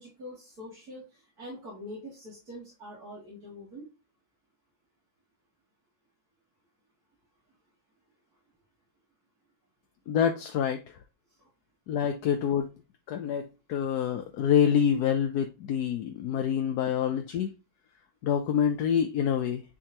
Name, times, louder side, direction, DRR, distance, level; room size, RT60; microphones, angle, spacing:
voice 1, 0.0-3.9, left 1 dB, 70° right, 2.9 m, -44 dB
voice 2, 10.1-10.8 11.9-12.7 13.1-17.5 18.2-19.6, left 8 dB, 75° left, 1.2 m, -26 dB
9.8 x 3.7 x 2.9 m
omnidirectional pair, 1.7 m